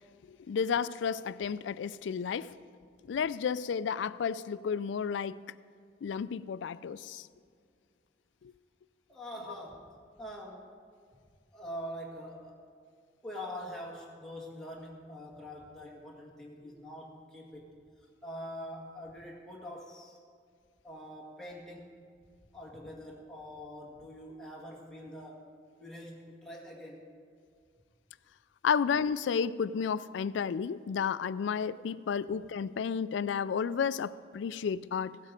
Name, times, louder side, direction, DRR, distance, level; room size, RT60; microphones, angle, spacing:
voice 1, 0.3-2.5 3.1-5.4 6.0-7.3 8.4-8.5 28.6-35.2, left 6 dB, 80° left, 16 dB, 0.3 m, -32 dB
voice 2, 9.1-9.9 10.2-10.7 11.5-12.6 13.2-20.2 20.8-21.9 22.5-25.5 25.8-27.1, equal, 5° left, -3 dB, 1.7 m, -44 dB
16.0 x 8.3 x 5.1 m, 2.1 s
head